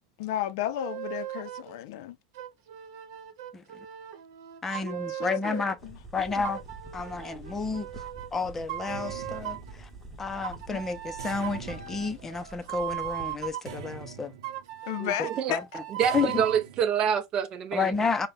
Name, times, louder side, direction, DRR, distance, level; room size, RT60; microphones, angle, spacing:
voice 1, 0.2-2.2 4.8-6.4 10.7-10.8 14.8-15.6, left 12 dB, 65° left, 0.5 m, -34 dB
sound 1, 0.8-1.8 2.3-5.8 6.4-8.3 8.7-9.8 10.4-13.7 14.4-16.6, right 12 dB, 65° right, 1.0 m, -38 dB
voice 2, 4.6-5.8 6.1-6.6 6.9-7.9 8.3-9.9 10.2-14.3 15.5-15.6 16.1-16.4 17.7-18.3, left 4 dB, 15° left, 0.5 m, -30 dB
sound 2, 5.8-13.5, right 2 dB, ahead, 1.1 m, -47 dB
sound 3, 8.9-10.2 11.2-12.9 13.6-14.8 16.0-16.9, right 7 dB, 85° right, 0.7 m, -44 dB
voice 3, 15.0-15.6 16.0-17.9, right 8 dB, 30° right, 0.6 m, -27 dB
5.3 x 2.2 x 3.4 m
supercardioid pair, 150°, 2 cm